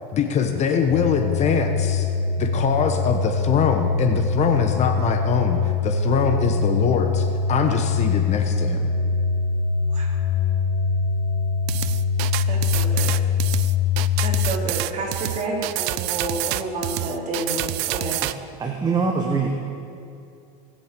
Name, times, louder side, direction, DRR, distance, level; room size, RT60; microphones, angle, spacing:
voice 1, 0.1-2.1 2.4-8.9, left 6 dB, 35° left, 6 dB, 1.1 m, -23 dB
sound 1, 0.9-14.5, left 5 dB, 75° left, 1.7 m, -23 dB
sound 2, 11.7-18.3, right 17 dB, 55° right, 0.5 m, -27 dB
voice 2, 12.5-13.2 14.2-18.2, right 2 dB, 35° right, -1 dB, 3.5 m, -30 dB
voice 3, 18.6-19.5, right 5 dB, 20° right, 2 dB, 1.3 m, -23 dB
19.0 x 7.8 x 6.8 m, 2.6 s
supercardioid pair, 125°, 20 cm